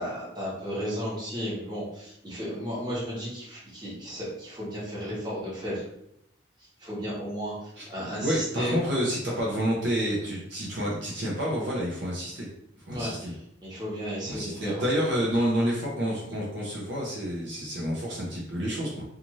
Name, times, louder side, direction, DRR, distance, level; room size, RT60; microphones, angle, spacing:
voice 1, 0.0-5.8 6.8-8.7 12.9-13.1 13.6-14.8, equal, 20° right, -8 dB, 1.1 m, -34 dB
voice 2, 8.2-12.5 12.9-13.3 14.3-19.0, equal, 65° right, -4 dB, 0.7 m, -29 dB
2.6 x 2.4 x 3.0 m, 0.75 s
head